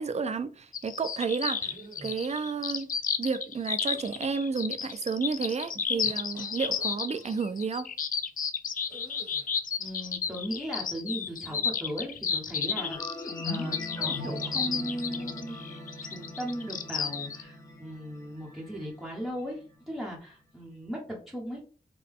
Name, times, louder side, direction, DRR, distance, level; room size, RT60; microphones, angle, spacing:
voice 1, 0.0-1.7 2.0-2.9 3.2-7.9, right 5 dB, 45° right, 0.4 m, -31 dB
sound 1, 0.7-17.4, left 6 dB, 65° left, 0.4 m, -32 dB
sound 2, 1.6-2.3 3.7-4.4 5.6-7.4 8.9-9.6 11.3-11.9 12.2-12.6 14.0-14.4, right 2 dB, 80° right, 1.9 m, -50 dB
voice 2, 9.8-13.0 13.4-15.6 16.0-21.6, equal, ahead, 1.1 m, -37 dB
sound 3, 12.7-19.8, left 2 dB, 25° left, 1.1 m, -41 dB
3.8 x 2.2 x 3.5 m
wide cardioid pair, 90°, 15 cm